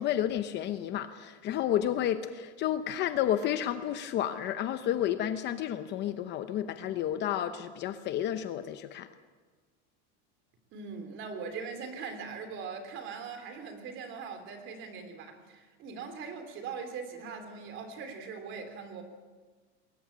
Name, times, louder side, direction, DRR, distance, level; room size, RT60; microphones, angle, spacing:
voice 1, 0.0-9.1, left 11 dB, 30° left, 10 dB, 0.8 m, -31 dB
voice 2, 10.7-19.0, right 5 dB, 35° right, 7 dB, 3.4 m, -41 dB
21.0 x 19.0 x 8.7 m, 1.4 s
supercardioid pair, 165°, 34 cm